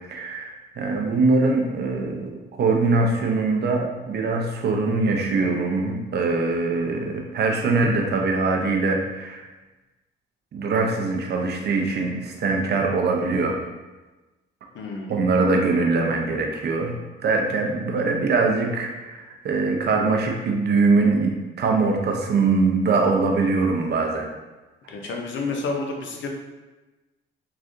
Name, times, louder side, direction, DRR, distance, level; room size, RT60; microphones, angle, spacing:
voice 1, 0.0-9.5 10.5-13.6 15.1-16.9 17.2-24.3, right 3 dB, 55° right, 1 dB, 0.7 m, -22 dB
voice 2, 14.7-15.1 24.9-26.4, left 3 dB, 70° left, 1 dB, 0.7 m, -30 dB
3.8 x 3.2 x 2.5 m, 1.2 s
cardioid pair, 90°, 20 cm